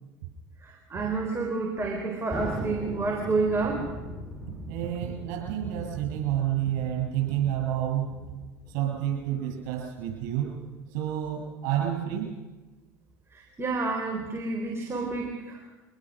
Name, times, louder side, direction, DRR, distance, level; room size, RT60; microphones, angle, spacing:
voice 1, 0.6-3.9 13.3-15.6, right 3 dB, 25° right, 2 dB, 3.9 m, -29 dB
Thunder, 2.3-9.1, equal, ahead, 6.8 m, -40 dB
voice 2, 4.7-8.2 8.7-10.6 10.9-12.3, right 11 dB, 70° right, 1 dB, 7.5 m, -29 dB
24.0 x 20.0 x 6.3 m, 1.2 s
hypercardioid pair, 80°, 9 cm